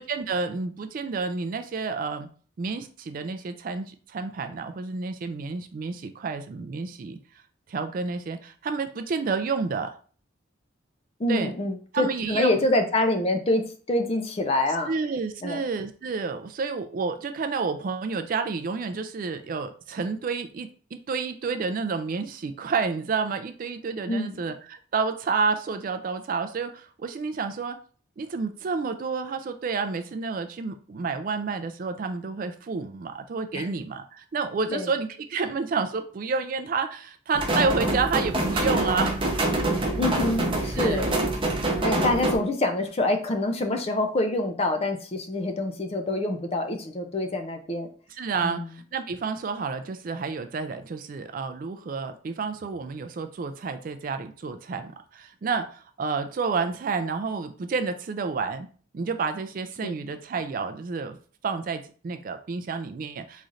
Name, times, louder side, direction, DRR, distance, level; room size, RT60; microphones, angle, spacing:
voice 1, 0.0-2.3 2.6-7.2 7.7-10.0 11.3-11.5 11.9-12.5 14.9-20.7 21.1-27.8 28.2-39.2 40.8-41.1 48.1-58.7 58.9-61.2 61.4-63.5, right 4 dB, 45° right, 8 dB, 0.3 m, -30 dB
voice 2, 11.2-14.9 15.4-15.6 24.1-24.4 33.5-33.7 34.7-34.9 40.0-41.1 41.8-47.9 48.4-48.7 59.8-60.0, left 2 dB, 30° left, 6 dB, 0.4 m, -26 dB
sound 1, 37.3-42.4, right 1 dB, 25° right, 0.8 m, -25 dB
3.9 x 3.1 x 2.5 m, 0.42 s
head